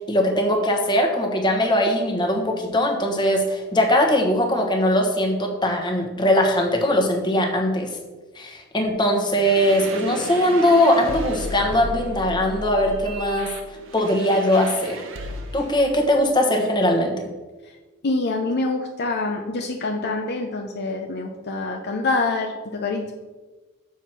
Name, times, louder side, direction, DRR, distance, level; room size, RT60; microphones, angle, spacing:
voice 1, 0.1-8.0 8.3-13.5 13.9-15.0 15.5-17.1, left 1 dB, 20° left, 1 dB, 1.2 m, -20 dB
sound 1, 9.3-15.8, right 1 dB, 65° right, 0.9 m, -34 dB
voice 2, 18.0-23.1, left 3 dB, 55° left, 3 dB, 0.6 m, -26 dB
7.1 x 4.5 x 6.0 m, 1.2 s
head